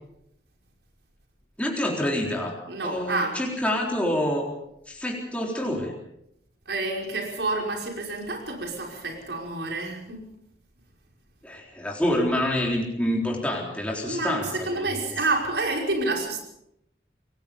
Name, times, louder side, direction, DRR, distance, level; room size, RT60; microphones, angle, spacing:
voice 1, 1.6-4.5 4.9-5.9 11.4-14.9, left 1 dB, 5° left, -1 dB, 4.0 m, -27 dB
voice 2, 2.7-3.4 6.7-10.2 14.1-14.4 14.6-16.4, right 2 dB, 75° right, 1 dB, 5.5 m, -28 dB
27.0 x 19.5 x 5.4 m, 0.79 s
head